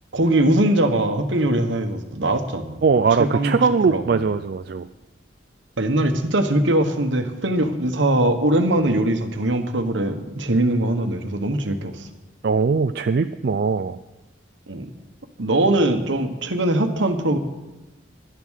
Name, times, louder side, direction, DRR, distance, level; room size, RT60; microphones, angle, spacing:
voice 1, 0.1-2.8 3.2-3.6 3.9-4.0 5.8-12.1 14.7-14.8 15.4-17.4, right 1 dB, 70° right, 7 dB, 1.3 m, -21 dB
voice 2, 2.8-4.9 12.4-14.0, right 5 dB, 55° right, 10 dB, 0.4 m, -20 dB
11.5 x 11.0 x 6.5 m, 1.0 s
head